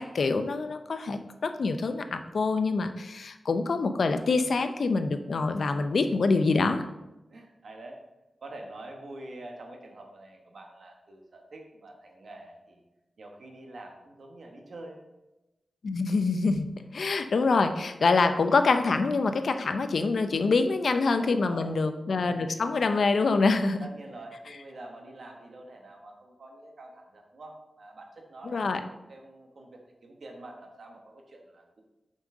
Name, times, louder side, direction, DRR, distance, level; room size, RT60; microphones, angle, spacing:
voice 1, 0.0-6.8 15.8-16.7 16.9-23.8 28.4-28.8, left 3 dB, 75° left, 8 dB, 0.5 m, -25 dB
voice 2, 7.3-8.0 8.4-12.8 13.2-15.1 21.1-21.8 23.8-31.8, right 2 dB, 75° right, 2 dB, 1.2 m, -46 dB
6.3 x 5.4 x 3.7 m, 0.99 s
cardioid pair, 65°, 0 cm